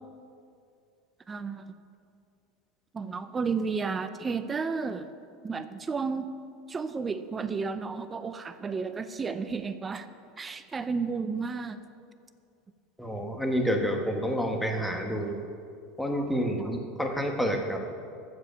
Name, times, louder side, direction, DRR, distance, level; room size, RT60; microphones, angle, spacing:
voice 1, 1.3-1.7 2.9-5.1 5.4-6.3 6.7-10.1 10.4-11.8 16.6-16.7, right 5 dB, 20° right, 11 dB, 0.6 m, -32 dB
voice 2, 13.0-15.4 16.0-17.8, equal, ahead, 2 dB, 1.3 m, -29 dB
14.5 x 4.9 x 6.6 m, 2.4 s
supercardioid pair, 120°, 0 cm